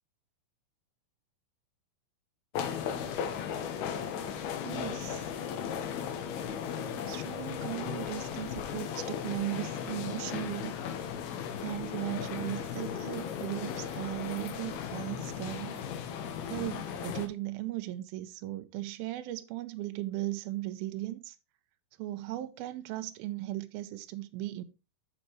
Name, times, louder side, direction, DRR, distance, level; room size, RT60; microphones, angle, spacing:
sound 1, 2.5-17.3, left 8 dB, 90° left, 3.1 m, -36 dB
voice 1, 4.6-5.3 7.1-10.8 11.6-15.8 16.4-21.4 22.0-24.6, right 15 dB, 85° right, 2.5 m, -37 dB
13.5 x 5.2 x 3.0 m
omnidirectional pair, 4.3 m